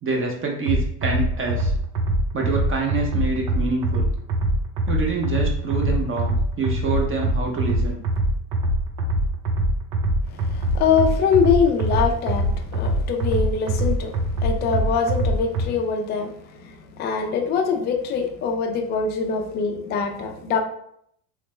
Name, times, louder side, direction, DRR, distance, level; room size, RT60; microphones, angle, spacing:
voice 1, 0.0-1.7 2.3-4.1 4.9-8.0, right 3 dB, 30° right, 0 dB, 0.6 m, -26 dB
sound 1, 0.7-15.7, right 1 dB, 90° right, 0.7 m, -23 dB
voice 2, 10.3-14.1 14.4-20.6, left 6 dB, 25° left, 3 dB, 0.3 m, -23 dB
3.2 x 2.0 x 3.1 m, 0.70 s
supercardioid pair, 100°, 46 cm